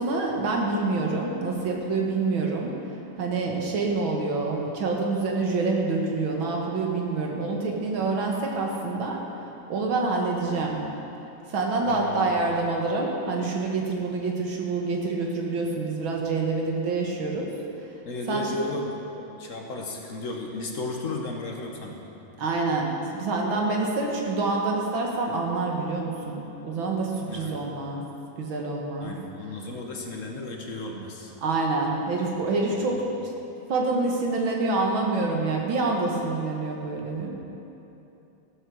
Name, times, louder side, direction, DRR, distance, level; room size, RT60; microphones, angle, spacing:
voice 1, 0.0-2.7 3.2-9.2 9.7-10.8 11.5-17.5 18.3-18.5 22.4-28.0 28.4-29.2 31.4-33.0 33.7-37.3, right 3 dB, 70° right, 0 dB, 2.3 m, -27 dB
voice 2, 11.8-12.3 18.1-22.0 27.3-27.6 29.0-31.3 32.7-32.8, left 2 dB, 45° left, 1 dB, 1.2 m, -34 dB
14.5 x 8.1 x 6.3 m, 3.0 s
omnidirectional pair, 2.3 m